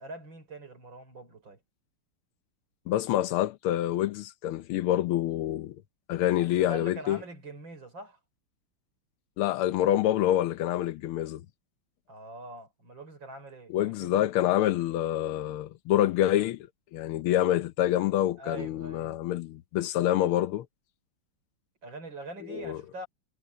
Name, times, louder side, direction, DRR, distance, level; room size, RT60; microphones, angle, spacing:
voice 1, 0.0-1.6 6.3-8.2 12.1-14.8 18.4-19.2 21.8-23.1, right 2 dB, 60° right, 6.2 m, -43 dB
voice 2, 2.9-5.8 6.1-7.2 9.4-11.4 13.7-20.7 22.5-22.8, left 12 dB, 85° left, 1.6 m, -27 dB
omnidirectional pair, 2.3 m